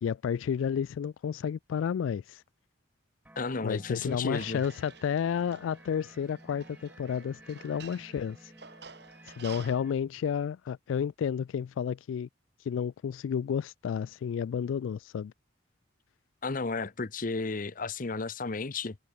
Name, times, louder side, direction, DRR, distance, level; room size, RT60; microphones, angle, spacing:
voice 1, 0.0-2.4 3.6-8.5 9.4-12.3 12.6-15.3, left 7 dB, 90° left, 0.3 m, -31 dB
sound 1, 3.2-9.9, right 1 dB, 10° right, 2.4 m, -54 dB
voice 2, 3.4-4.6 16.4-19.0, left 3 dB, 45° left, 0.8 m, -33 dB
sound 2, 4.0-9.8, right 5 dB, 60° right, 2.9 m, -51 dB
open air
head